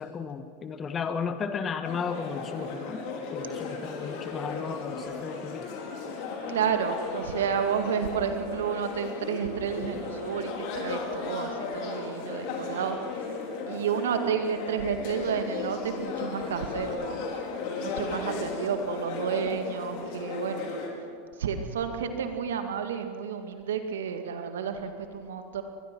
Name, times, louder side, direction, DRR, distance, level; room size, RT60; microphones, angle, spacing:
voice 1, 0.0-3.0 3.3-5.7, left 6 dB, 30° left, 9 dB, 1.7 m, -34 dB
sound 1, 1.8-20.9, left 4 dB, 55° left, 4.5 m, -36 dB
voice 2, 6.5-13.0 13.7-17.2 17.8-20.7 21.4-25.6, right 7 dB, 75° right, 6 dB, 2.1 m, -31 dB
24.0 x 21.0 x 6.2 m, 2.3 s
hypercardioid pair, 90°, 0 cm